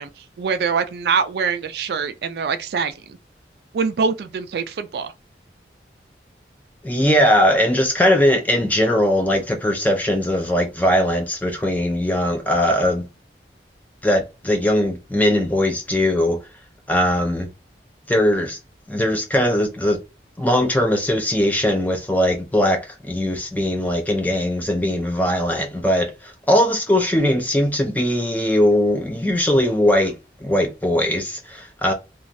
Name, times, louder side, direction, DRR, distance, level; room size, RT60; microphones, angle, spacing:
voice 1, 0.0-2.9 3.7-5.1, right 5 dB, 60° right, 0.3 m, -24 dB
voice 2, 6.8-13.1 14.0-16.5 16.9-17.5 18.1-18.6 18.9-20.0 20.4-31.9, left 1 dB, 10° left, 0.5 m, -20 dB
3.0 x 2.3 x 2.6 m
head